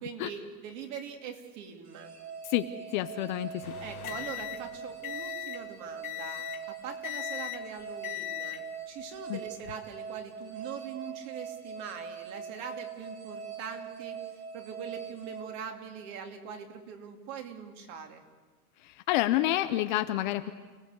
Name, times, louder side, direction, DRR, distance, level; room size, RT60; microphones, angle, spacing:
voice 1, 0.0-2.2 3.8-18.2, right 7 dB, 35° right, 5 dB, 2.8 m, -42 dB
sound 1, 1.9-16.3, right 7 dB, 80° right, 4.4 m, -42 dB
voice 2, 2.4-3.6 9.3-9.4 18.8-20.5, left 14 dB, 30° left, 9 dB, 0.7 m, -29 dB
sound 2, 3.6-5.7 6.0-6.7 7.0-7.7 8.0-8.7 9.5-9.7, left 18 dB, 70° left, 2.1 m, -38 dB
29.5 x 18.5 x 8.2 m, 1.4 s
supercardioid pair, 155°, 46 cm